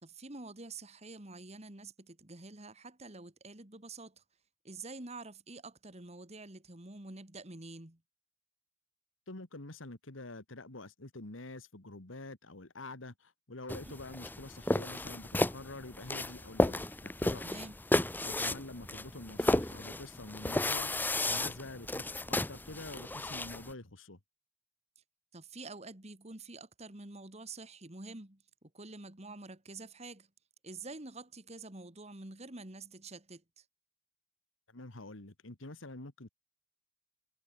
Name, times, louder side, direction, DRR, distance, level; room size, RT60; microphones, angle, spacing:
voice 1, 0.0-4.2 4.6-8.0 13.8-13.9 17.4-17.7 25.3-30.3 30.6-33.6, right 3 dB, 35° right, 2.3 m, -47 dB
voice 2, 9.3-17.6 18.2-24.2 34.7-36.3, left 2 dB, 85° left, 2.2 m, -47 dB
sound 1, 13.7-23.7, left 1 dB, 10° left, 1.0 m, -33 dB
head